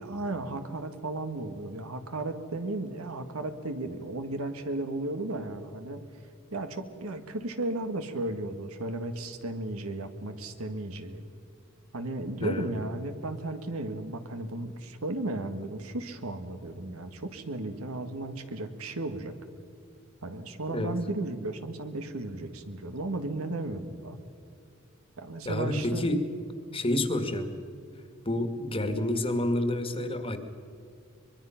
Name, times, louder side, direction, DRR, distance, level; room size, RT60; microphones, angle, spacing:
voice 1, 0.0-6.0 6.5-11.3 11.9-19.3 20.2-24.2 25.2-26.1, right 2 dB, 90° right, 8 dB, 1.7 m, -35 dB
voice 2, 12.4-12.7 20.7-20.9 25.4-26.2 26.7-27.5 28.2-30.4, left 1 dB, 25° left, 7 dB, 1.7 m, -29 dB
24.0 x 22.0 x 5.8 m, 2.4 s
head